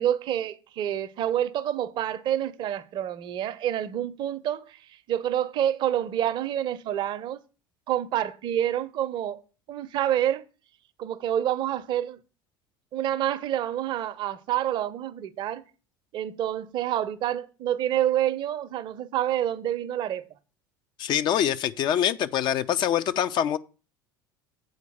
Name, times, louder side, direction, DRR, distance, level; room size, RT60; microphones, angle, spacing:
voice 1, 0.0-4.8 5.1-7.4 7.9-9.4 9.7-10.4 11.0-12.2 12.9-15.6 16.1-20.2, right 11 dB, 45° right, 0.6 m, -28 dB
voice 2, 21.0-23.6, left 10 dB, 40° left, 0.5 m, -24 dB
7.9 x 4.5 x 6.8 m
figure-of-eight pair, 65°, 11 cm